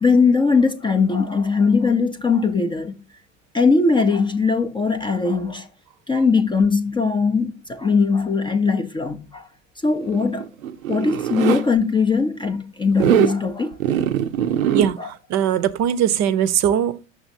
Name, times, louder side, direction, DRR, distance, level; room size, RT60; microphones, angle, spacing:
voice 1, 0.0-2.9 3.5-5.7 6.1-9.5 9.8-10.5 10.9-13.8 15.0-15.1, left 4 dB, 15° left, 0.4 m, -20 dB
Zipper (clothing), 10.0-11.6 12.9-13.4 13.8-14.9, right 10 dB, 85° right, 0.6 m, -21 dB
voice 2, 14.7-17.1, right 9 dB, 45° right, 0.6 m, -21 dB
6.2 x 6.2 x 2.6 m
hypercardioid pair, 85°, 40 cm